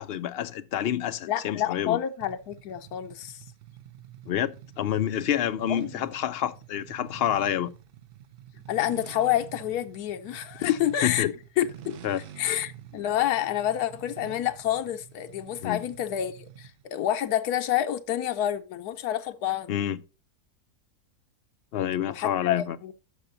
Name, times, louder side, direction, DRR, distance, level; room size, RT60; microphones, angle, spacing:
voice 1, 0.0-2.0 4.3-7.7 10.6-10.7 11.0-11.3 12.0-12.2 15.6-15.8 19.7-20.0 21.7-22.8, left 10 dB, 65° left, 0.6 m, -28 dB
voice 2, 1.3-3.4 5.7-5.9 8.7-12.0 12.4-19.7 22.1-22.9, left 11 dB, 85° left, 1.2 m, -28 dB
sound 1, 2.2-16.9, right 11 dB, 80° right, 0.5 m, -48 dB
12.5 x 5.9 x 2.6 m
omnidirectional pair, 1.6 m